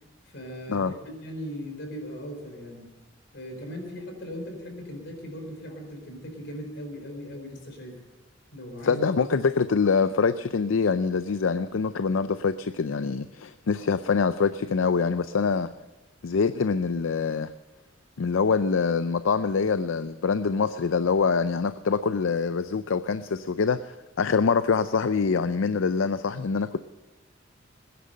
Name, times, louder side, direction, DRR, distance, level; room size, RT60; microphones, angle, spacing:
voice 1, 0.3-2.9 3.3-8.0 8.5-9.2, equal, 65° left, 3 dB, 4.6 m, -38 dB
voice 2, 8.8-15.7 16.2-17.5 18.2-26.8, left 5 dB, 85° left, 13 dB, 0.5 m, -25 dB
20.0 x 10.5 x 6.6 m, 1.1 s
head